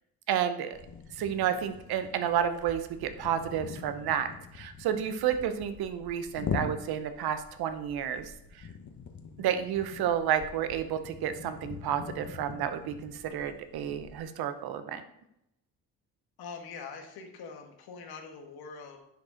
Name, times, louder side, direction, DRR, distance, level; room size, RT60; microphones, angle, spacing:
voice 1, 0.3-0.8 1.1-8.7 9.4-15.0, right 9 dB, 80° right, 10 dB, 0.9 m, -31 dB
sound 1, 0.7-14.2, left 6 dB, 50° left, 1.1 m, -43 dB
voice 2, 16.4-19.0, left 5 dB, 85° left, 4 dB, 1.5 m, -43 dB
10.0 x 5.1 x 3.9 m, 0.82 s
cardioid pair, 85°, 37 cm